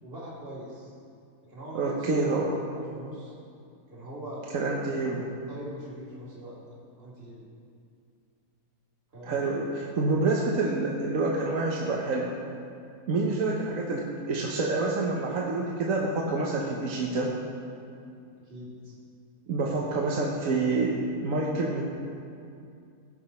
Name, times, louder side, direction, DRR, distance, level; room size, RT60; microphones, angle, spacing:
voice 1, 0.0-1.0 1.5-2.4 2.7-3.3 3.9-4.5 5.5-6.6 7.0-7.4 9.1-9.5 18.4-19.0 19.7-20.0, equal, 35° right, -6 dB, 2.4 m, -42 dB
voice 2, 1.7-2.5 4.5-5.2 9.2-12.4 13.1-17.3 19.5-21.8, right 3 dB, 60° right, -2 dB, 1.3 m, -27 dB
16.5 x 5.9 x 4.3 m, 2.4 s
omnidirectional pair, 1.7 m